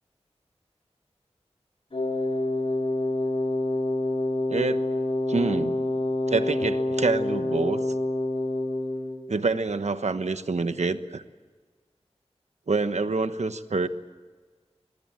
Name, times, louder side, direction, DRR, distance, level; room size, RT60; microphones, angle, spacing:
Wind instrument woodwind instrument, 1.9-9.2, left 2 dB, 60° left, 3.9 m, -27 dB
voice 1, 4.5-4.8 5.3-5.8 6.3-7.8 9.3-11.2 12.7-13.9, right 3 dB, 90° right, 10 dB, 1.2 m, -26 dB
24.0 x 23.5 x 7.7 m, 1.4 s
wide cardioid pair, 55°, 11 cm